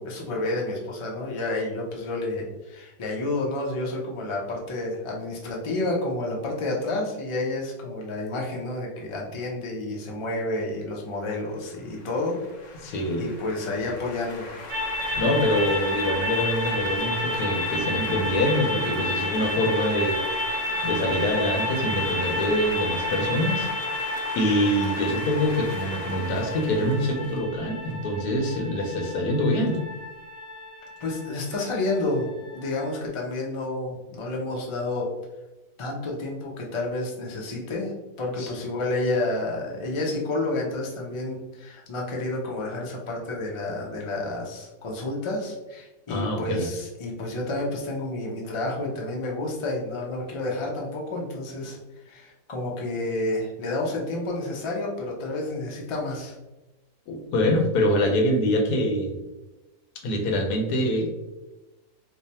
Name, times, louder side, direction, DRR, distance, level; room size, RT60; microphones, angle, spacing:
voice 1, 0.0-12.9 13.2-14.5 31.0-32.3 32.5-35.1 35.8-37.9 38.2-56.3, left 2 dB, 45° left, -2 dB, 0.3 m, -30 dB
sound 1, 11.2-27.9, left 3 dB, 65° left, 0.9 m, -39 dB
voice 2, 12.7-13.3 15.2-20.2 20.8-23.8 24.4-29.8 38.4-38.5 46.1-46.7 57.1-59.2 60.0-61.1, left 1 dB, 85° left, 3 dB, 1.2 m, -25 dB
sound 2, 14.7-33.1, left 1 dB, 60° right, 1.0 m, -31 dB
3.1 x 2.2 x 4.1 m, 1.0 s
omnidirectional pair, 1.6 m